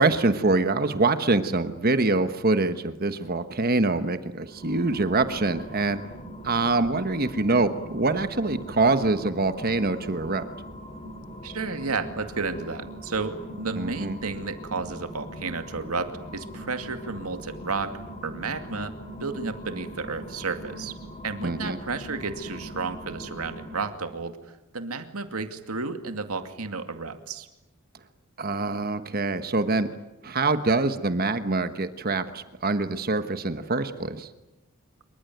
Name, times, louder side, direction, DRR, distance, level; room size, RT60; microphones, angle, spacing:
voice 1, 0.0-6.0 6.4-10.5 13.8-14.2 21.4-21.8 28.4-29.9 30.2-34.3, right 3 dB, 45° right, 10 dB, 1.2 m, -24 dB
sound 1, 4.4-24.1, equal, 30° left, 2.8 m, -41 dB
voice 2, 11.4-17.9 18.2-18.9 19.2-21.0 21.2-27.5, right 4 dB, 90° right, 8 dB, 2.4 m, -32 dB
26.5 x 24.0 x 9.3 m, 1.0 s
head